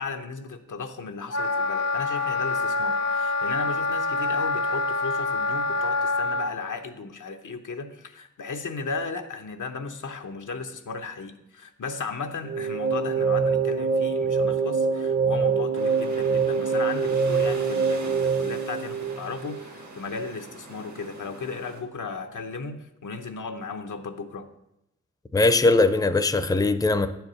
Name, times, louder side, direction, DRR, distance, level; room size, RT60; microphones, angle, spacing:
voice 1, 0.0-24.5, left 4 dB, 90° left, 0.8 m, -35 dB
Wind instrument woodwind instrument, 1.3-6.5, left 3 dB, 60° left, 0.7 m, -26 dB
sound 1, 12.4-19.7, right 5 dB, 40° right, 0.6 m, -25 dB
sound 2, 15.7-21.8, right 2 dB, 70° right, 1.4 m, -43 dB
voice 2, 25.3-27.1, left 3 dB, 10° left, 0.5 m, -20 dB
9.0 x 4.6 x 6.6 m
wide cardioid pair, 75°, 30 cm